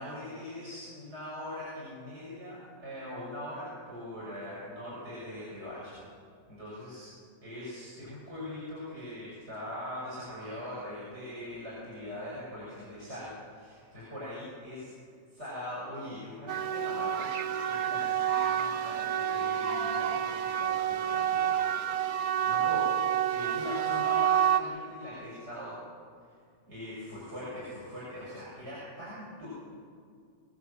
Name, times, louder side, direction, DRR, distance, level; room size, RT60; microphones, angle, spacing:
voice 1, 0.0-6.0 6.5-7.1 7.4-14.9 15.3-21.5 21.9-22.9 23.3-25.8 26.7-29.5, left 1 dB, 45° right, -7 dB, 6.7 m, -41 dB
sound 1, 16.5-24.6, right 9 dB, 80° right, 1.4 m, -28 dB
24.0 x 18.5 x 7.5 m, 2.2 s
omnidirectional pair, 1.5 m